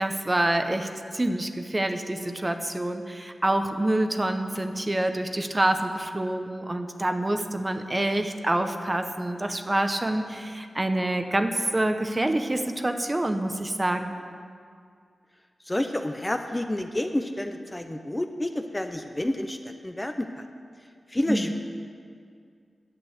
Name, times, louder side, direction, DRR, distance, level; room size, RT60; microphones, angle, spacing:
voice 1, 0.0-14.1 21.3-21.5, right 1 dB, 20° right, 7 dB, 0.7 m, -27 dB
voice 2, 15.6-20.5 21.1-21.5, left 1 dB, 15° left, 6 dB, 0.6 m, -29 dB
10.5 x 8.5 x 7.8 m, 2.2 s
wide cardioid pair, 105°, 0 cm